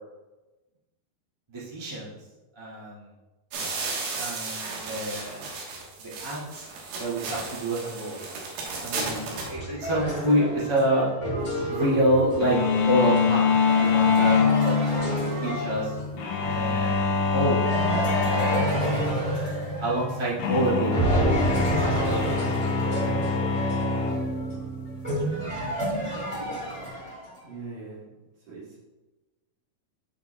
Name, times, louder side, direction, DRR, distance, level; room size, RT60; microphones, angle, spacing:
voice 1, 1.5-2.1 2.5-3.1 4.1-5.5 6.0-6.7 7.0-8.2 8.8-11.1 11.7-13.5 13.8-14.3 14.6-14.7 15.4-15.9 16.4-17.0 17.3-17.6 17.8-18.5 18.8-19.0 19.8-20.9, right 1 dB, 30° right, -9 dB, 0.5 m, -27 dB
sound 1, 3.5-9.5, right 4 dB, 85° right, 3.6 m, -34 dB
sound 2, 8.9-16.3 17.6-20.5 20.9-27.4, right 1 dB, 20° left, 0.9 m, -30 dB
sound 3, 12.4-26.9, left 5 dB, 85° left, 1.9 m, -26 dB
voice 2, 27.4-28.1 28.5-28.8, right 3 dB, 55° right, -7 dB, 3.7 m, -41 dB
13.0 x 4.9 x 2.3 m, 1.1 s
omnidirectional pair, 4.9 m